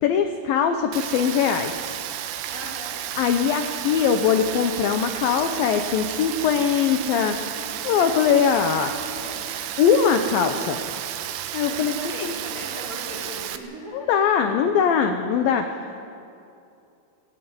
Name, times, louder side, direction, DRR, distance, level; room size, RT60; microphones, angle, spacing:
voice 1, 0.0-1.7 3.2-7.4 7.8-8.9 9.8-10.8 11.5-11.9 12.2-12.3 13.9-15.7, left 7 dB, 80° left, 6 dB, 2.0 m, -21 dB
Rain, 0.9-13.6, right 11 dB, 75° right, 2.9 m, -32 dB
voice 2, 2.5-3.0 7.5-8.4 8.7-9.5 11.6-14.2, equal, 25° right, -2 dB, 2.8 m, -39 dB
18.5 x 17.0 x 9.6 m, 2.6 s
omnidirectional pair, 5.4 m